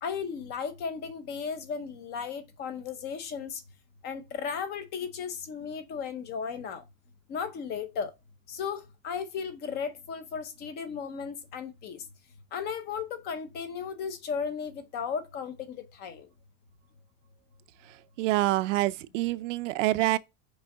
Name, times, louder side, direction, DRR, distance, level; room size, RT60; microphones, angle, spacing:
voice 1, 0.0-3.6 4.0-6.8 7.3-8.1 8.5-12.0 12.5-16.3, left 6 dB, 25° left, 0.6 m, -35 dB
voice 2, 18.2-20.2, right 17 dB, 60° right, 0.6 m, -26 dB
6.2 x 5.2 x 3.6 m
supercardioid pair, 175°, 42 cm